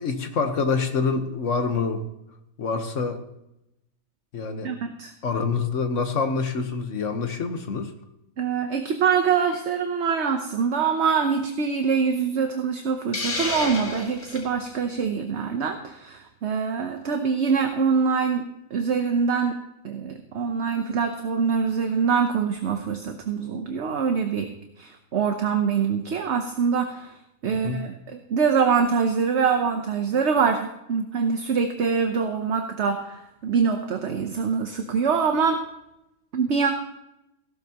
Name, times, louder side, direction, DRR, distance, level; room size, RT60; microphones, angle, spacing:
voice 1, 0.0-2.0 2.6-3.2 4.3-4.7 5.2-7.9 27.6-27.8, left 4 dB, 60° left, 7 dB, 1.5 m, -26 dB
voice 2, 4.6-5.1 8.4-18.4 18.7-19.5 19.8-24.5 24.8-27.1 27.4-35.6 36.3-36.7, right 6 dB, 55° right, 5 dB, 1.1 m, -24 dB
Hiss, 13.1-14.5, left 3 dB, 80° left, 2.5 m, -30 dB
16.0 x 12.5 x 2.9 m, 0.87 s
omnidirectional pair, 1.5 m